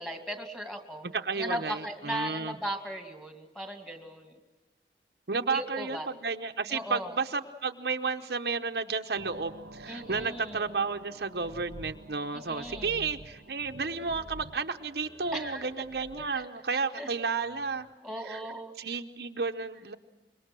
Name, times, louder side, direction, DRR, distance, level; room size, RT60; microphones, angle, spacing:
voice 1, 0.0-1.1 1.4-4.4 5.5-6.1 6.7-7.2 9.9-10.7 12.3-13.0 15.3-15.7 16.3-17.1 18.0-18.7, equal, ahead, 4 dB, 2.4 m, -38 dB
voice 2, 1.1-2.5 5.3-17.9 18.3-18.4 18.8-19.9, right 4 dB, 65° right, 5 dB, 0.9 m, -32 dB
sound 1, 9.1-17.9, right 1 dB, 85° right, 1.0 m, -49 dB
25.5 x 22.5 x 6.2 m, 1.2 s
head